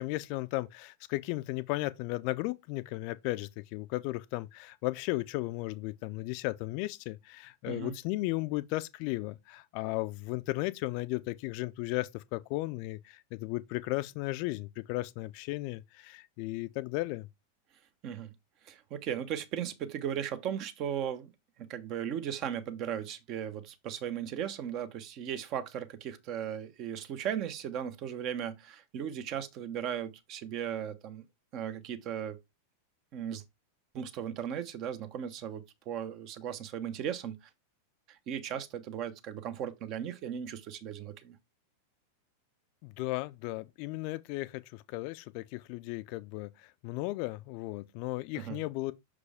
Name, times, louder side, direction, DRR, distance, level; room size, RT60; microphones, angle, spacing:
voice 1, 0.0-17.3 42.8-48.9, left 20 dB, 45° left, 0.5 m, -35 dB
voice 2, 18.0-18.3 18.6-21.3 21.6-31.2 31.5-32.4 33.1-33.4 33.9-37.5 38.1-41.4 48.3-48.6, right 9 dB, 40° right, 0.9 m, -37 dB
6.1 x 5.0 x 3.5 m
figure-of-eight pair, 90°, 0 cm